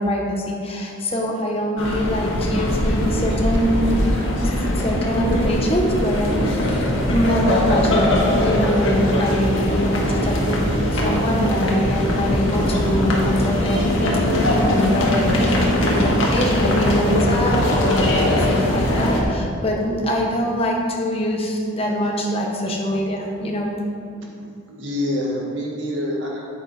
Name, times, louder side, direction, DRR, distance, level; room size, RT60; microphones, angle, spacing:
voice 1, 0.0-4.0 4.8-14.0 14.5-23.8, equal, 30° left, -1 dB, 1.1 m, -23 dB
sound 1, 1.8-19.2, left 1 dB, 65° left, 1.7 m, -20 dB
voice 2, 24.4-26.5, left 1 dB, 60° right, -2 dB, 2.0 m, -29 dB
9.7 x 8.2 x 4.3 m, 2.5 s
head